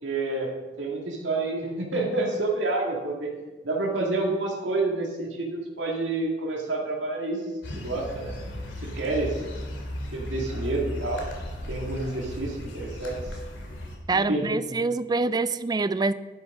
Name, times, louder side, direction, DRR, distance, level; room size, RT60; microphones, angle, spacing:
voice 1, 0.0-0.5 0.8-3.3 3.6-7.4 7.8-8.3 8.8-9.3 10.1-11.3 11.7-13.2 14.1-14.5, right 2 dB, 80° right, -2 dB, 2.0 m, -28 dB
sound 1, 7.6-14.0, left 1 dB, 85° left, 2.3 m, -36 dB
voice 2, 14.1-16.1, right 3 dB, 20° right, 14 dB, 0.3 m, -25 dB
10.5 x 8.9 x 4.9 m, 1.3 s
head